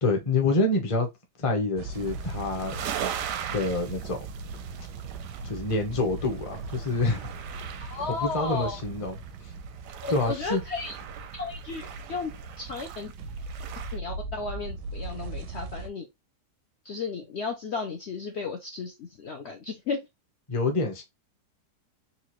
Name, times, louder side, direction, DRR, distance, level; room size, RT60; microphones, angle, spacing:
voice 1, 0.0-1.1 1.4-2.8 3.5-4.2 5.4-7.3 8.1-9.2 10.1-10.6 20.5-21.0, left 3 dB, 30° left, 0.5 m, -27 dB
sound 1, 1.8-15.9, right 4 dB, 90° right, 1.2 m, -39 dB
sound 2, 1.9-14.0, right 9 dB, 70° right, 0.8 m, -40 dB
voice 2, 7.8-8.8 10.0-10.9 11.3-13.1 13.9-16.1 16.8-20.1, left 4 dB, 80° left, 0.6 m, -34 dB
4.1 x 2.4 x 2.9 m
omnidirectional pair, 1.8 m